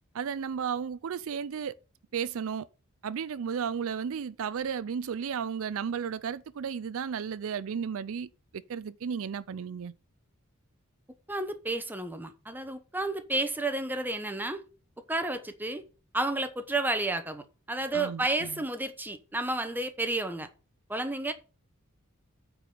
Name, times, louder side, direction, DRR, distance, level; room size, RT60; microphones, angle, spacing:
voice 1, 0.1-1.7 2.1-2.7 3.0-9.9 17.9-18.6, right 7 dB, 65° right, 0.4 m, -34 dB
voice 2, 11.3-14.6 15.1-15.8 16.1-20.5 20.9-21.3, right 2 dB, 10° right, 1.0 m, -31 dB
9.0 x 4.7 x 6.7 m
head